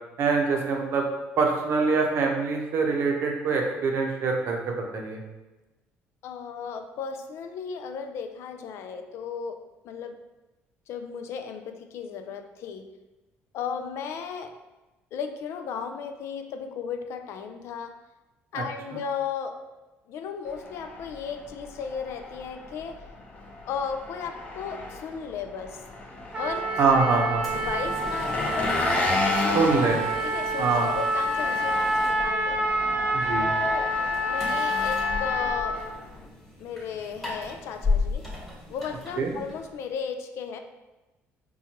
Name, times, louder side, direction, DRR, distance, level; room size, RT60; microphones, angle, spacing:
voice 1, 0.2-1.0 1.4-5.2 18.5-18.6 18.9-19.0 26.8-27.5 29.5-30.0 30.6-30.9 33.1-33.5 39.2-39.3, right 4 dB, 60° right, 1 dB, 0.7 m, -24 dB
voice 2, 6.2-9.6 9.8-10.2 10.9-12.9 13.5-14.5 15.1-18.0 18.5-19.6 20.1-23.0 23.7-25.8 26.3-26.7 27.5-28.7 29.4-29.6 30.2-32.6 33.4-33.9 34.3-35.8 36.6-38.2 38.7-40.6, left 6 dB, 70° left, 7 dB, 0.4 m, -35 dB
Engine, 20.5-36.3, left 2 dB, 25° left, 0.6 m, -33 dB
Trumpet, 26.3-35.8, equal, 25° right, 0.6 m, -27 dB
sound 1, 27.4-39.9, left 3 dB, 5° left, 1.3 m, -36 dB
4.3 x 2.3 x 2.8 m, 1.1 s
cardioid pair, 105°, 5 cm